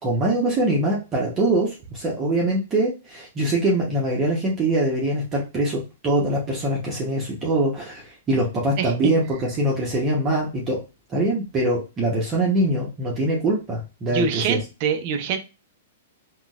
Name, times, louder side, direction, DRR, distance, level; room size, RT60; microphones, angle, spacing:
voice 1, 0.0-10.8 11.1-14.6, right 1 dB, 25° right, -3 dB, 0.9 m, -23 dB
voice 2, 14.1-15.4, right 6 dB, 45° right, 6 dB, 0.5 m, -24 dB
3.8 x 2.3 x 2.3 m, 0.29 s
hypercardioid pair, 130°, 0 cm